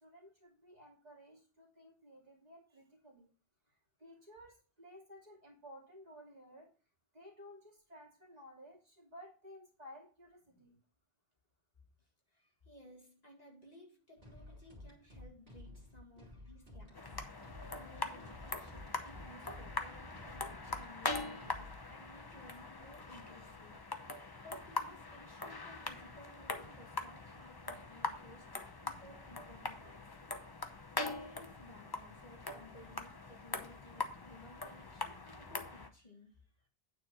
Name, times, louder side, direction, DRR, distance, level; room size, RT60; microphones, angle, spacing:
voice 1, 0.0-3.3 4.0-6.7 7.1-10.8, equal, 40° right, -1 dB, 2.6 m, -56 dB
voice 2, 12.0-30.3 30.9-36.7, left 1 dB, 40° left, 0 dB, 2.1 m, -58 dB
sound 1, 14.2-21.9, left 1 dB, 60° right, 2.6 m, -53 dB
sound 2, 16.9-35.9, left 3 dB, 25° left, 0.8 m, -43 dB
9.3 x 4.2 x 6.1 m, 0.36 s
omnidirectional pair, 1.0 m